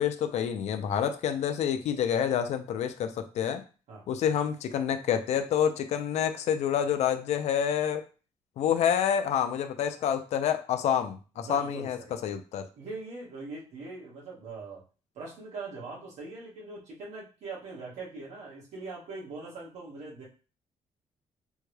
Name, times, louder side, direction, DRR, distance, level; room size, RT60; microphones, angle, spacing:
voice 1, 0.0-3.6 4.1-8.0 8.6-12.7, left 9 dB, 70° left, 8 dB, 0.5 m, -28 dB
voice 2, 11.4-12.2 12.7-14.8 15.1-20.2, right 3 dB, 75° right, -4 dB, 1.6 m, -41 dB
3.5 x 2.2 x 3.2 m, 0.35 s
cardioid pair, 130°, 12 cm